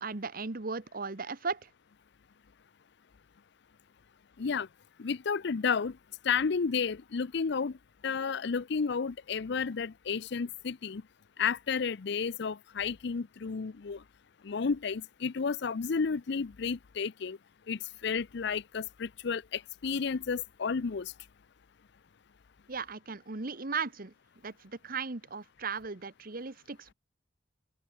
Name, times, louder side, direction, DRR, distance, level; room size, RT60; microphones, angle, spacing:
voice 1, 0.0-1.7 22.7-24.1 24.4-26.9, right 5 dB, 50° right, 1.3 m, -37 dB
voice 2, 5.0-5.9 6.2-7.7 8.0-11.0 11.4-14.0 14.4-17.4 17.7-21.1, left 5 dB, 65° left, 0.5 m, -32 dB
open air
head